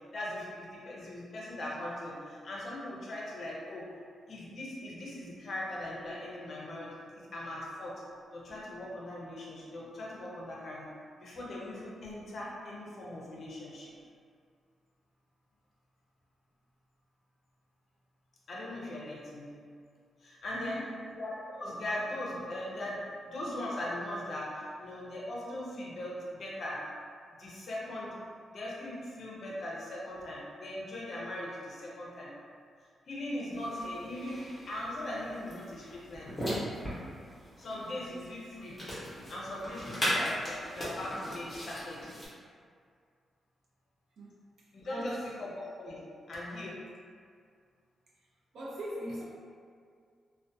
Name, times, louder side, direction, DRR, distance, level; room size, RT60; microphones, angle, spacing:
voice 1, 0.1-3.9 4.3-8.0 8.3-10.9 11.2-13.9 18.5-19.6 20.2-20.9 21.2-26.8 27.4-28.2 28.5-32.3 33.1-36.5 37.6-38.8 39.1-42.1 44.7-46.8, left 1 dB, 45° left, -5 dB, 0.5 m, -40 dB
voice 2, 20.5-20.9 44.2-44.4 44.9-45.2 48.5-49.2, equal, 70° right, -5 dB, 0.5 m, -39 dB
sound 1, 33.5-42.3, equal, 10° left, 0.8 m, -38 dB
2.4 x 2.1 x 2.6 m, 2.2 s
wide cardioid pair, 155°, 0 cm